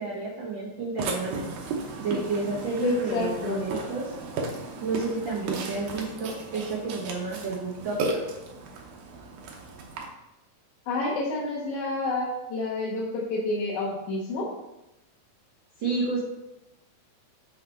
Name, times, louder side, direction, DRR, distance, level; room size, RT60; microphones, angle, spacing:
voice 1, 0.0-1.5 2.0-4.1 4.8-8.2 15.8-16.2, right 3 dB, 90° right, -4 dB, 1.0 m, -31 dB
Burping eructation, 1.0-10.0, right 3 dB, 70° right, 2.3 m, -35 dB
voice 2, 2.8-3.7 10.9-14.5, left 3 dB, 65° left, -5 dB, 2.2 m, -29 dB
6.0 x 5.8 x 4.3 m, 0.93 s
omnidirectional pair, 3.9 m